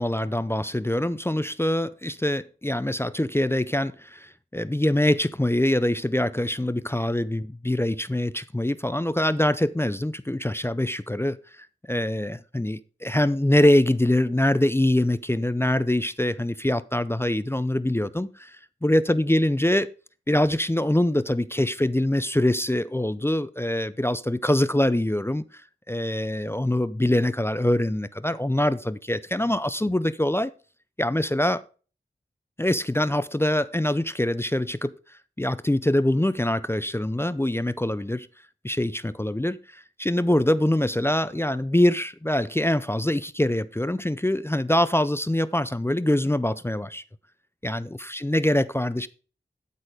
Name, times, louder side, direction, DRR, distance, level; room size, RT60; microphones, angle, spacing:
voice 1, 0.0-11.4 11.9-19.9 20.3-25.4 25.9-30.5 31.0-31.6 32.6-34.9 35.4-38.3 38.6-47.0 47.6-49.1, left 1 dB, 10° left, 0.5 m, -24 dB
12.0 x 4.2 x 4.9 m
wide cardioid pair, 45°, 20 cm